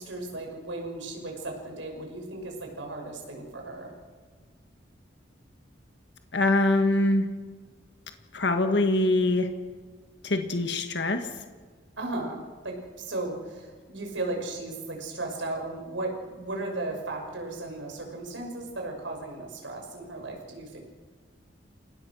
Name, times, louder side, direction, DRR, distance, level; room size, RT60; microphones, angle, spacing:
voice 1, 0.0-3.9 12.0-20.8, right 2 dB, 90° right, 2 dB, 6.2 m, -35 dB
voice 2, 6.3-7.3 8.3-9.5 10.2-11.3, left 2 dB, 65° left, 6 dB, 1.8 m, -23 dB
30.0 x 17.5 x 6.4 m, 1.5 s
head